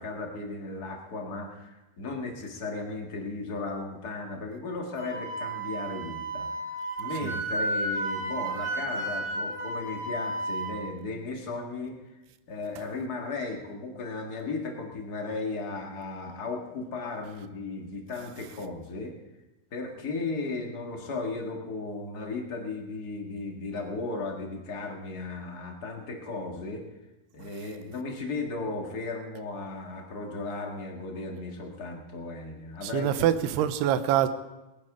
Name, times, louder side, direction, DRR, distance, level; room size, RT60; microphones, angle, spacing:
voice 1, 0.0-12.0 12.5-19.1 19.7-26.8 27.3-33.4, left 3 dB, 50° left, 1.1 m, -36 dB
Wind instrument woodwind instrument, 5.0-10.8, right 2 dB, 25° right, 1.0 m, -32 dB
voice 2, 32.8-34.3, right 11 dB, 85° right, 2.8 m, -25 dB
19.5 x 10.5 x 4.9 m
omnidirectional pair, 4.6 m